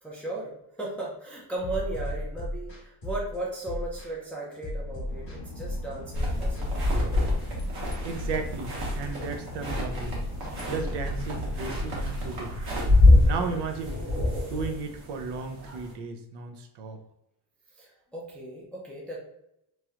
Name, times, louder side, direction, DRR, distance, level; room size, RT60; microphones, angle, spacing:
voice 1, 0.0-0.5 0.8-7.3 17.8-19.2, right 2 dB, 5° left, -4 dB, 0.3 m, -36 dB
sound 1, 1.6-12.3, left 1 dB, 30° left, 1.1 m, -35 dB
Boat Water vehicle / Engine, 4.7-13.7, left 1 dB, 60° left, 0.5 m, -41 dB
sound 2, 6.1-15.9, left 2 dB, 60° right, 1.1 m, -26 dB
voice 2, 8.0-10.2 10.7-12.6 13.2-14.0 14.4-17.0, right 4 dB, 75° right, 6 dB, 0.6 m, -35 dB
3.1 x 2.8 x 2.4 m, 0.82 s
cardioid pair, 170°, 41 cm